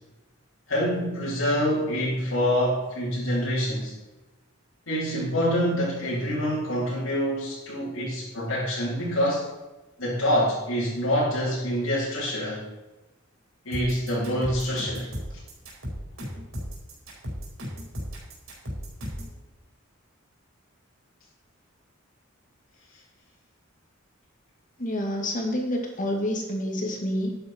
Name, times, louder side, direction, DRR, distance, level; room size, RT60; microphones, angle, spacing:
voice 1, 0.7-3.9 4.9-9.4 10.0-12.6 13.6-15.1, equal, 90° left, -9 dB, 4.1 m, -26 dB
sound 1, 13.7-19.4, equal, 70° right, 4.8 m, -35 dB
voice 2, 24.8-27.3, left 1 dB, 40° left, 1 dB, 2.3 m, -28 dB
12.0 x 9.3 x 4.5 m, 1.1 s
head